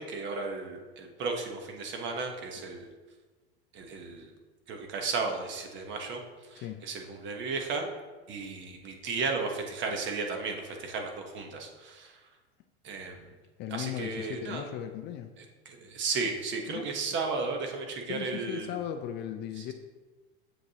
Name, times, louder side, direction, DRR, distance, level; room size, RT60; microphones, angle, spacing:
voice 1, 0.0-2.9 3.7-4.3 4.7-6.2 6.5-7.9 8.3-12.2 12.8-13.3 13.7-14.6 15.4-18.8 19.6-19.7, right 4 dB, 35° right, 3 dB, 1.1 m, -34 dB
voice 2, 13.6-15.3 16.7-16.9 18.1-19.7, left 10 dB, 35° left, 7 dB, 0.4 m, -37 dB
7.3 x 6.6 x 2.9 m, 1.3 s
supercardioid pair, 120°, 31 cm